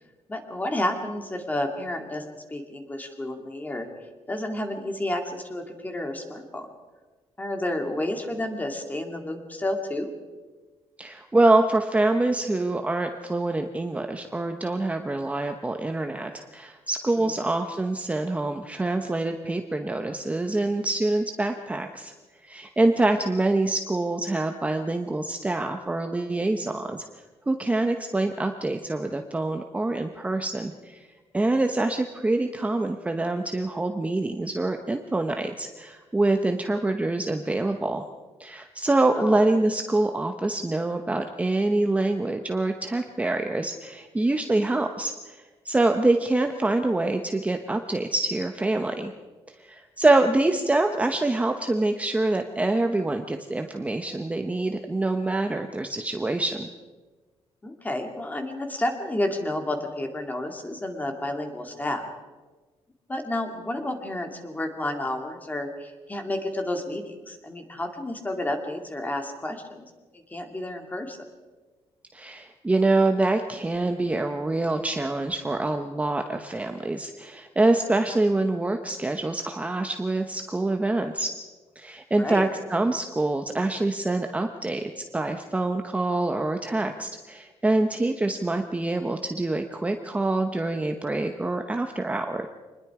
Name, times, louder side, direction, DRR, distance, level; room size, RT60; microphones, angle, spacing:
voice 1, 0.3-3.9 4.3-6.7 7.4-10.1 39.1-39.4 57.6-62.1 63.1-71.2 82.2-82.5, left 1 dB, 15° left, 4 dB, 2.5 m, -31 dB
voice 2, 11.0-22.1 22.4-27.1 27.5-31.1 31.3-38.1 38.4-49.1 49.6-56.7 72.1-81.3 81.8-92.5, right 2 dB, 10° right, 5 dB, 1.0 m, -25 dB
26.0 x 20.5 x 4.9 m, 1.3 s
cardioid pair, 150°, 11 cm